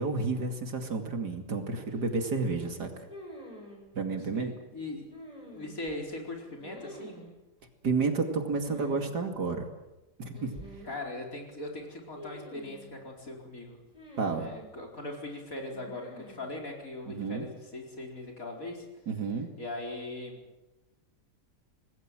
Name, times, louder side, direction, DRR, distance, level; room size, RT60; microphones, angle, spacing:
voice 1, 0.0-2.9 3.9-4.5 7.8-9.7 10.2-10.5 14.2-14.5 17.1-17.5 19.1-19.5, right 4 dB, 70° right, 5 dB, 3.0 m, -31 dB
sound 1, 3.1-3.8 5.1-5.9 6.6-7.3 8.6-9.1 9.3-9.4 10.3-11.0 12.2-12.9 13.9-14.7 15.7-16.5, equal, 20° left, 6.2 m, -47 dB
voice 2, 4.3-5.1 5.4-7.2 10.8-13.8 14.3-18.9 19.6-20.4, left 2 dB, 50° left, 1 dB, 4.9 m, -40 dB
26.0 x 19.5 x 7.6 m, 1.0 s
omnidirectional pair, 1.8 m